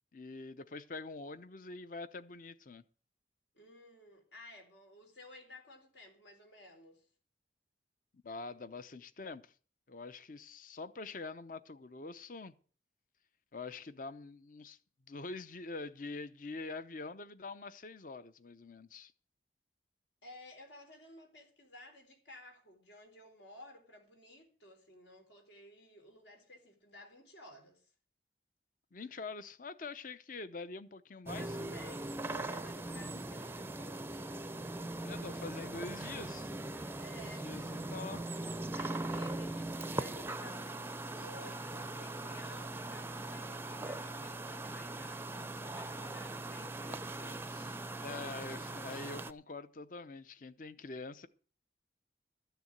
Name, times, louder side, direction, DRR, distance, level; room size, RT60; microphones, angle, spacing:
voice 1, 0.1-2.8 8.2-9.5 9.9-12.5 13.5-14.8 15.1-19.1 28.9-31.5 33.0-33.2 35.0-36.5 37.1-38.2 48.0-51.3, left 3 dB, 50° left, 0.7 m, -45 dB
voice 2, 3.5-7.1 20.2-27.9 31.4-34.3 36.9-37.6 38.7-47.8, left 1 dB, 80° left, 3.7 m, -55 dB
sound 1, 31.3-49.3, right 2 dB, 15° right, 0.5 m, -40 dB
13.0 x 6.9 x 7.5 m
head